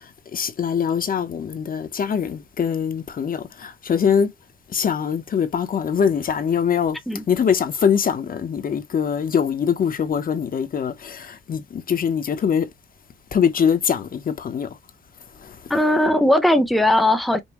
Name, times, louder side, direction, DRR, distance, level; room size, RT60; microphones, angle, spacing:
voice 1, 0.3-3.4 3.9-4.3 4.7-7.0 7.3-12.7 13.3-14.7, left 7 dB, 45° left, 0.9 m, -22 dB
voice 2, 15.7-17.4, left 1 dB, ahead, 0.9 m, -18 dB
5.5 x 2.2 x 3.0 m
cardioid pair, 90°, 20 cm